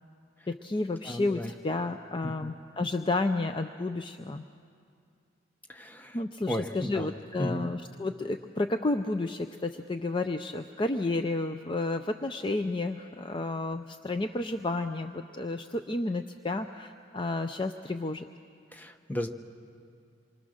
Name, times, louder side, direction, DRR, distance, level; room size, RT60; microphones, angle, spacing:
voice 1, 0.5-4.4 6.1-18.3, left 2 dB, 30° left, 7 dB, 0.5 m, -31 dB
voice 2, 1.0-1.5 2.2-2.5 5.7-6.2 6.5-7.1 7.4-7.7 18.7-19.3, equal, 10° left, 5 dB, 0.9 m, -34 dB
27.0 x 23.5 x 6.5 m, 2.3 s
head